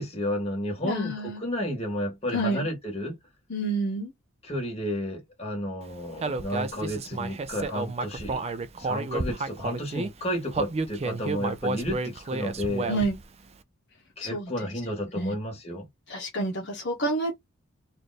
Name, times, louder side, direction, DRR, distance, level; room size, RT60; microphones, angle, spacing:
voice 1, 0.0-3.2 4.4-8.4 8.8-12.9 14.2-15.9, left 1 dB, 30° left, 1.7 m, -32 dB
voice 2, 0.8-1.4 2.3-2.6 3.5-4.1 12.9-13.2 14.2-14.5 15.1-15.3 16.1-17.4, right 2 dB, 55° left, 1.2 m, -28 dB
Human voice, 6.2-10.1 10.5-13.2, right 3 dB, 30° right, 0.4 m, -31 dB
3.3 x 2.5 x 4.0 m
head